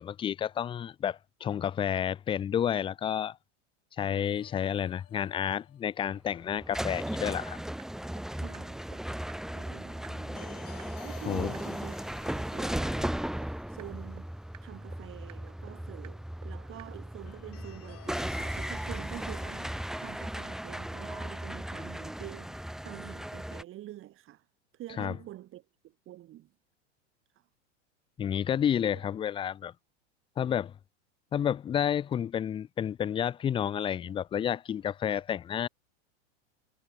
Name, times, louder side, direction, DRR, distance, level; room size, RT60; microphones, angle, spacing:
voice 1, 0.0-3.4 4.0-7.6 11.3-11.5 25.0-25.1 28.2-29.7 30.4-30.7 31.3-35.7, left 9 dB, 15° left, 0.5 m, -30 dB
sound 1, 4.2-6.1 10.1-14.4 14.7-14.8 17.3-20.5, left 17 dB, 40° left, 5.1 m, -55 dB
sound 2, 6.1-23.6, right 1 dB, ahead, 1.2 m, -36 dB
sound 3, 7.0-7.1 7.4-7.5 7.8-7.9 8.2-8.3 8.5-8.6 8.9-9.0 9.3-9.4 9.7-9.8 10.0-10.1 10.4-10.5 10.8-10.9 11.2-11.3 11.5-11.6 11.9-12.0 12.3-12.4 12.7-12.8 13.0-13.1 13.4-13.5 13.8-13.9 14.2-14.3 14.5-14.6 14.9-15.0 15.3-15.4 15.7-15.8 16.0-16.1 16.4-16.5 16.8-16.9, right 12 dB, 80° right, 6.3 m, -50 dB
voice 2, 8.3-9.1 9.5-10.6 11.0-12.0 12.3-14.3 14.6-24.5 24.7-26.5 27.3-27.5 28.9-29.0, right 14 dB, 35° right, 4.1 m, -47 dB
hypercardioid pair, 125°, 36 cm